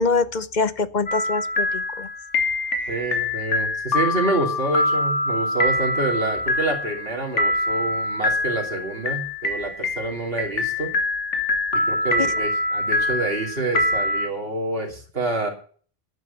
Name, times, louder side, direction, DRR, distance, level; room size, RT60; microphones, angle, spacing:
voice 1, 0.0-2.1 2.8-2.9 12.2-12.3, left 4 dB, 45° left, 14 dB, 0.8 m, -24 dB
sound 1, 1.1-14.3, left 2 dB, 85° left, 2.4 m, -24 dB
voice 2, 2.9-10.9 11.7-15.5, right 2 dB, 55° right, 0 dB, 3.2 m, -27 dB
11.0 x 9.6 x 7.0 m, 0.44 s
omnidirectional pair, 1.2 m